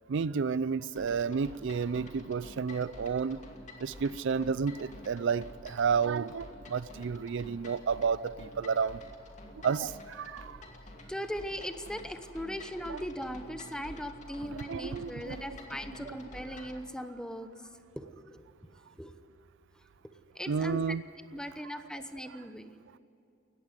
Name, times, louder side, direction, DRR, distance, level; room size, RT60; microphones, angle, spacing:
voice 1, 0.1-3.4 3.8-9.0 9.6-10.6 12.9-13.0 14.5-15.4 16.1-16.2 20.5-21.0, right 6 dB, 65° right, 18 dB, 0.4 m, -31 dB
sound 1, 1.0-16.8, left 1 dB, 40° left, 2.5 m, -49 dB
voice 2, 11.1-17.5 18.0-18.4 19.0-19.1 20.3-20.8 21.3-22.7, equal, 5° left, 9 dB, 1.0 m, -39 dB
19.0 x 15.0 x 9.8 m, 2.8 s
head